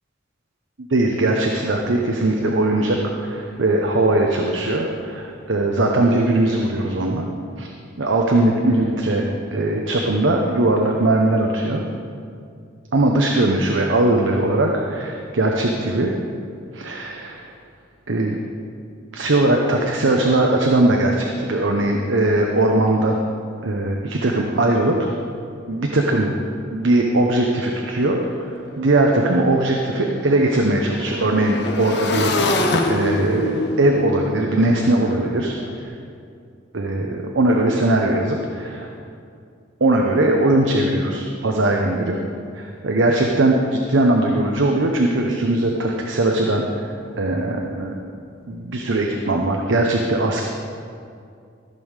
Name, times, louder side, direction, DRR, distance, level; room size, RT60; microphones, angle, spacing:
voice 1, 0.8-7.3 7.6-7.7 8.0-11.8 12.9-16.1 16.7-17.5 18.1-18.4 19.1-23.2 23.6-25.1 25.7-26.3 26.7-28.2 28.5-35.5 36.7-38.9 39.8-42.2 42.5-46.9 47.2-47.9 48.5-50.4, right 2 dB, 80° right, 1 dB, 0.8 m, -20 dB
Motorcycle / Engine, 28.2-28.3 28.6-35.7, left 2 dB, 60° left, 0.9 m, -26 dB
14.5 x 5.4 x 6.5 m, 2.4 s
head